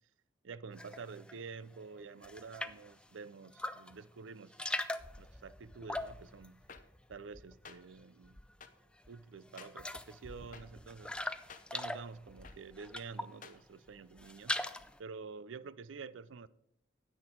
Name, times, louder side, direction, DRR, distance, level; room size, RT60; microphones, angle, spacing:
voice 1, 0.4-4.6 4.9-6.7 7.1-8.4 9.1-11.1 11.7-14.6 15.0-16.5, right 5 dB, 85° right, 0.5 m, -48 dB
sound 1, 0.8-1.4 1.7-2.9 3.5-4.0 4.3-7.7 8.0-8.7 9.1-9.2 9.5-13.5 13.9-15.0, left 1 dB, 5° left, 0.4 m, -41 dB
sound 2, 6.7-6.8 7.7-7.8 8.6-8.7 9.6-9.7 10.5-10.6 11.5-11.6 12.4-12.6 13.4-13.6, left 6 dB, 45° left, 0.8 m, -51 dB
9.7 x 8.9 x 4.5 m
head